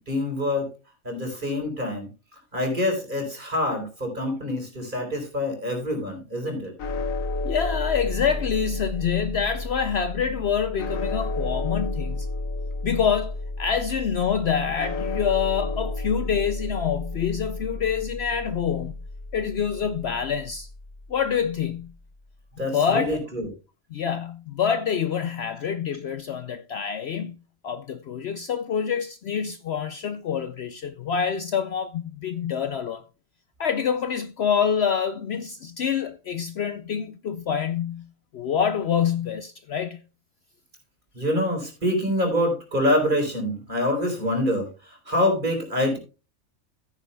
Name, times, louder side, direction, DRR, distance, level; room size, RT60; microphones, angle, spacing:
voice 1, 0.1-0.7 1.0-6.7 22.6-23.5 41.1-46.0, left 1 dB, 35° right, 4.3 m, -26 dB
sound 1, 6.8-21.0, left 2 dB, 75° left, 1.7 m, -32 dB
voice 2, 7.4-12.3 12.8-18.9 19.3-20.7 21.1-21.9 22.7-23.2 23.9-27.4 27.6-33.0 33.6-38.1 38.3-40.0, left 7 dB, 60° left, 0.8 m, -26 dB
14.0 x 9.9 x 2.2 m
omnidirectional pair, 1.4 m